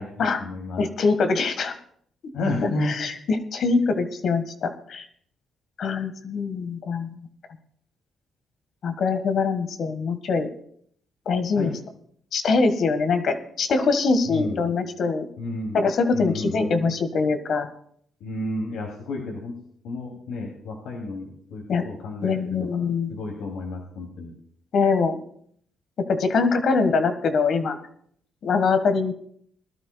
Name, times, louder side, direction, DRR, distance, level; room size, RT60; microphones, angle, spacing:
voice 1, 0.0-0.8 2.3-3.0 11.6-11.7 14.3-14.6 15.4-15.8 16.1-16.9 18.2-19.5 19.8-22.7 23.1-24.3, left 2 dB, 90° left, -2 dB, 2.8 m, -31 dB
voice 2, 0.8-1.7 2.6-5.0 5.8-7.2 8.8-10.5 11.2-11.8 12.3-15.3 15.7-17.7 21.7-21.8 22.2-23.1 24.7-25.2 26.1-27.7 28.4-29.1, left 4 dB, 60° left, 7 dB, 1.6 m, -23 dB
21.0 x 12.0 x 2.3 m, 0.65 s
cardioid pair, 90°, 0 cm